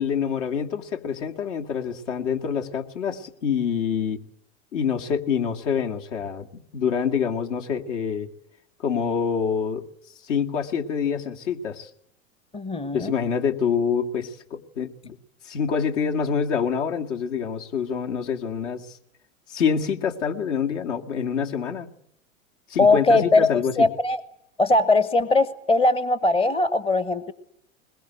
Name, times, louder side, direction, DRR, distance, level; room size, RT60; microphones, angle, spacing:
voice 1, 0.0-4.2 4.7-8.3 8.8-9.8 10.3-11.9 12.9-15.2 15.4-19.0 19.5-22.0 22.7-23.9, left 7 dB, 60° left, 4 dB, 2.3 m, -26 dB
voice 2, 12.5-13.1 22.8-24.2 24.6-27.3, left 2 dB, 15° left, 15 dB, 1.0 m, -20 dB
21.5 x 21.0 x 9.3 m, 0.73 s
figure-of-eight pair, 95°, 41 cm